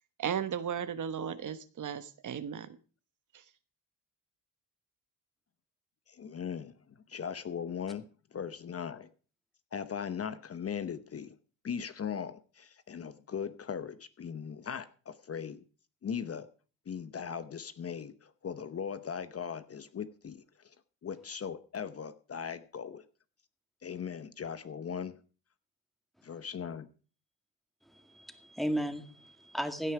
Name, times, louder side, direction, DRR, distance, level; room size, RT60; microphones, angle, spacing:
voice 1, 0.2-2.8, right 8 dB, 50° right, 12 dB, 1.1 m, -35 dB
voice 2, 6.1-9.1 9.7-11.4 11.6-15.6 16.0-16.5 16.9-20.7 21.0-23.0 23.8-25.2 26.2-26.9, left 7 dB, 35° left, 13 dB, 0.9 m, -39 dB
voice 3, 27.9-29.9, equal, ahead, 8 dB, 1.9 m, -35 dB
16.5 x 9.5 x 4.8 m, 0.38 s
cardioid pair, 100°, 40 cm